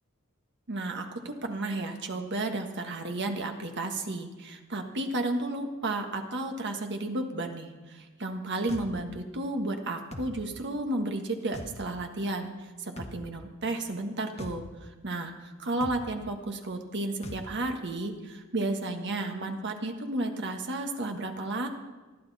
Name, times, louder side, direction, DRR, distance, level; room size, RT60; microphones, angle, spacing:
voice 1, 0.7-12.5 12.8-21.7, right 2 dB, 50° right, 4 dB, 1.6 m, -33 dB
sound 1, 8.7-8.9 10.1-10.3 11.5-11.7 13.0-13.2 14.4-14.6 15.8-16.0 17.2-17.4, left 1 dB, 30° left, 1.5 m, -40 dB
20.5 x 12.5 x 4.2 m, 1.3 s
head